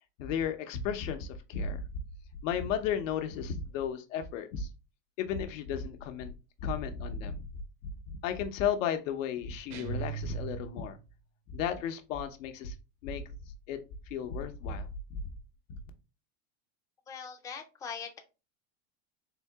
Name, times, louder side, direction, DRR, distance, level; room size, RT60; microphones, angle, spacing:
voice 1, 0.2-1.8 2.4-4.7 5.2-6.3 6.6-7.4 8.1-11.0 11.5-12.7 13.0-13.2 13.7-13.8 14.1-15.2, left 7 dB, 80° left, 7 dB, 0.8 m, -34 dB
sound 1, 9.7-11.1, right 11 dB, 65° right, 0.8 m, -39 dB
voice 2, 17.1-18.2, left 6 dB, 10° left, 4 dB, 0.4 m, -41 dB
3.8 x 2.8 x 3.4 m, 0.30 s
supercardioid pair, 130°, 38 cm